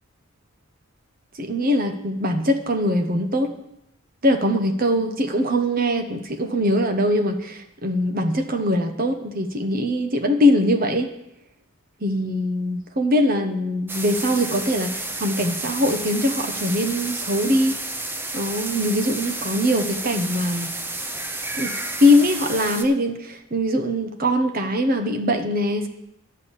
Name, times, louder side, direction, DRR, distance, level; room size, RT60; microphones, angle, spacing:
voice 1, 1.3-3.5 4.2-11.1 12.0-17.8 18.3-20.7 21.6-21.7 22.0-25.9, left 1 dB, 40° right, 6 dB, 0.9 m, -22 dB
sound 1, 13.9-22.9, right 2 dB, 10° right, 0.5 m, -31 dB
10.5 x 5.5 x 8.2 m, 0.83 s
head